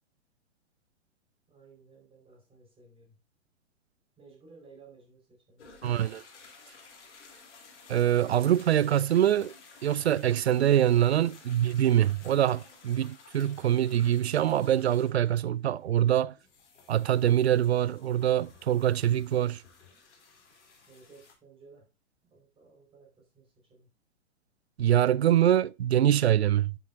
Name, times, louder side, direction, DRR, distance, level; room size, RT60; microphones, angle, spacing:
voice 1, 1.5-3.2 4.2-5.6 19.9-20.0 20.9-21.9 22.3-23.9, right 4 dB, 15° right, 4.5 m, -57 dB
sound 1, 5.6-21.3, left 4 dB, 60° left, 3.2 m, -54 dB
voice 2, 5.8-6.2 7.9-9.5 9.8-16.3 16.9-19.6 24.8-26.8, right 11 dB, 55° right, 0.5 m, -24 dB
11.0 x 7.4 x 2.6 m
figure-of-eight pair, 115°, 40 cm